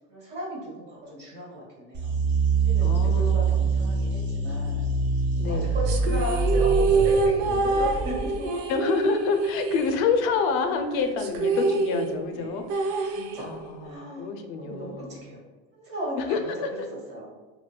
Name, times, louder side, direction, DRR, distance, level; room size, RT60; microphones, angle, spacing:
voice 1, 0.1-2.1 2.6-4.9 5.4-8.3 12.3-12.6 13.1-13.5 13.8-14.3 14.6-15.4 15.7-16.5 17.1-17.3, equal, 30° right, -5 dB, 1.3 m, -35 dB
sound 1, 1.9-8.5, right 4 dB, 50° right, 1.2 m, -25 dB
voice 2, 2.8-3.6 5.4-5.8 8.7-15.3 16.3-16.4, left 5 dB, 70° left, 6 dB, 0.5 m, -28 dB
sound 2, 5.9-10.5 10.8-10.9 11.2-13.8, right 4 dB, 80° right, 0.5 m, -26 dB
3.7 x 2.2 x 2.2 m, 1.3 s
cardioid pair, 145°, 35 cm